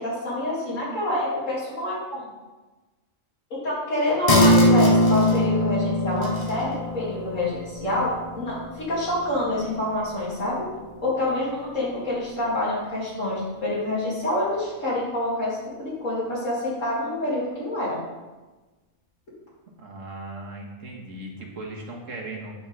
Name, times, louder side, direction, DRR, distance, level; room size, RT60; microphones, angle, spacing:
voice 1, 0.0-2.2 3.5-10.7 11.0-18.0, left 1 dB, 80° left, -7 dB, 3.1 m, -27 dB
sound 1, 4.3-11.3 11.7-11.8, left 1 dB, 30° left, 0.8 m, -23 dB
voice 2, 19.8-22.5, right 2 dB, 75° right, -1 dB, 1.7 m, -37 dB
8.4 x 7.1 x 3.5 m, 1.2 s
omnidirectional pair, 1.3 m